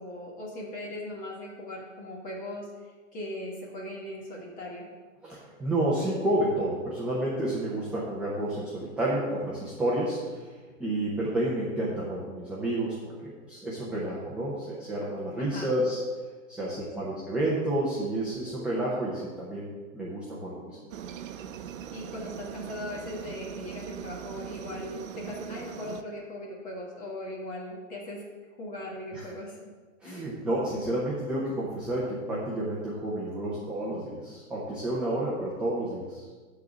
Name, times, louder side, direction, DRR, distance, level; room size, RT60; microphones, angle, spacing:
voice 1, 0.0-4.9 15.4-15.8 16.6-17.1 21.9-28.2 28.6-29.6 30.0-30.2, left 1 dB, 20° left, -2 dB, 1.6 m, -39 dB
voice 2, 5.2-10.5 10.8-16.0 16.5-20.8 21.1-21.2 29.1-29.2 30.0-36.3, right 1 dB, 5° right, -7 dB, 0.6 m, -30 dB
Aircraft, 20.9-26.0, right 8 dB, 70° right, 0.7 m, -40 dB
9.2 x 4.0 x 7.0 m, 1.4 s
hypercardioid pair, 155°, 40 cm